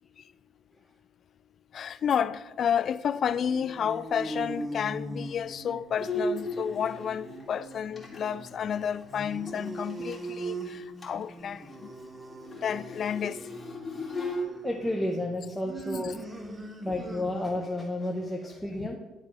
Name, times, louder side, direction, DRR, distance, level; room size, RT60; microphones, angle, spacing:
voice 1, 1.7-11.9 12.6-13.4 18.8-19.0, left 8 dB, 55° left, 0.3 m, -31 dB
sound 1, 3.3-17.8, right 2 dB, 20° right, 1.1 m, -41 dB
Bowed string instrument, 6.0-10.3 10.6-10.7 11.0-11.3 11.6-14.4, left 1 dB, 30° left, 2.3 m, -37 dB
voice 2, 14.6-16.2 16.8-19.0, left 1 dB, 5° left, 0.9 m, -31 dB
10.5 x 3.6 x 4.8 m
supercardioid pair, 65°, 0 cm